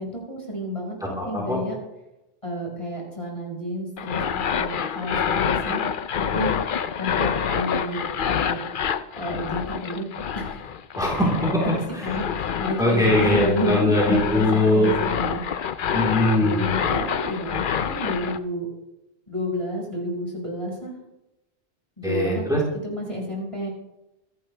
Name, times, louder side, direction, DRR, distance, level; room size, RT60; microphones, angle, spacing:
voice 1, 0.0-1.8 2.4-4.2 4.5-4.7 4.9-5.8 6.2-6.5 7.0-8.0 8.3-8.6 9.2-10.1 10.3-10.7 11.6-13.8 14.1-15.4 16.4-18.7 19.3-20.9 22.0-22.4 22.8-23.7, equal, 25° left, -2 dB, 5.5 m, -30 dB
voice 2, 1.0-1.6 11.0-11.6 12.8-14.9 15.9-16.6 22.0-22.6, left 1 dB, 5° right, -4 dB, 3.8 m, -21 dB
sound 1, 4.0-18.4, left 7 dB, 55° left, 0.8 m, -27 dB
25.5 x 11.5 x 3.3 m, 0.91 s
omnidirectional pair, 1.2 m